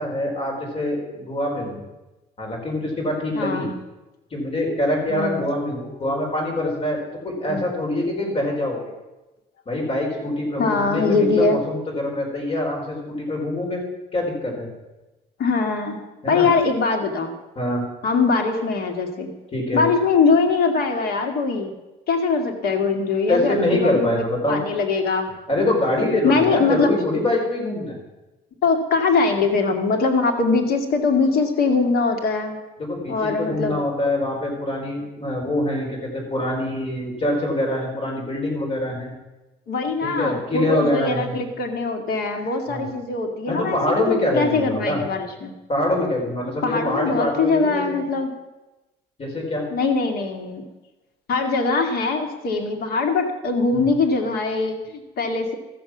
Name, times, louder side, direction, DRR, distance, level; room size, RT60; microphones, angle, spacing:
voice 1, 0.0-1.8 2.4-3.7 4.3-7.0 7.2-8.8 9.7-13.8 14.1-14.7 16.2-16.5 17.6-17.8 19.5-19.9 23.3-24.6 25.5-28.0 32.9-39.1 40.0-41.3 42.7-42.9 43.5-45.0 45.7-48.1 49.2-49.6 53.7-53.9, left 1 dB, 35° left, -1 dB, 4.5 m, -24 dB
voice 2, 3.4-3.7 5.1-5.4 7.4-7.7 10.5-11.6 15.4-16.0 16.3-17.3 18.0-19.3 19.7-21.7 22.1-25.3 26.2-26.9 28.6-32.6 33.1-33.8 39.7-45.5 46.6-48.3 49.7-50.7 51.3-55.5, left 4 dB, 65° left, 3 dB, 2.1 m, -22 dB
13.5 x 7.1 x 6.2 m, 1.1 s
cardioid pair, 110°, 17 cm